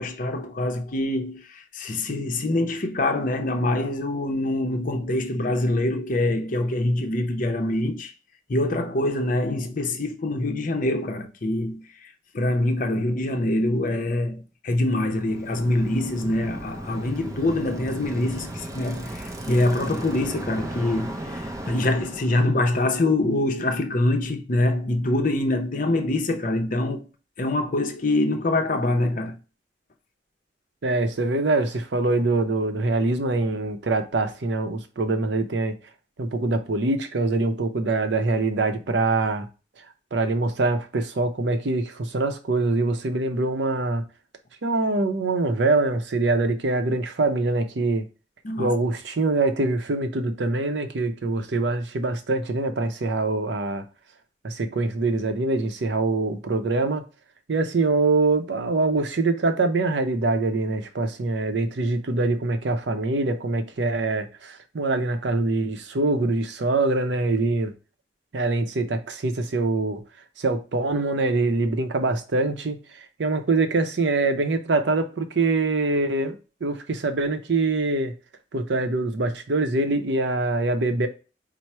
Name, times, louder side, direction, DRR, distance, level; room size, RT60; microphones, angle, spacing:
voice 1, 0.0-8.1 8.5-27.1 27.4-29.4 48.4-48.8, left 1 dB, 45° left, 0.6 m, -25 dB
Bicycle, 15.0-22.5, right 1 dB, 20° right, 0.5 m, -36 dB
voice 2, 30.8-35.8 36.2-39.5 40.1-44.0 44.6-48.1 48.6-53.8 54.4-57.0 57.5-67.7 68.3-70.0 70.4-78.1 78.5-81.1, right 3 dB, 70° right, 0.6 m, -24 dB
4.6 x 2.0 x 4.2 m
head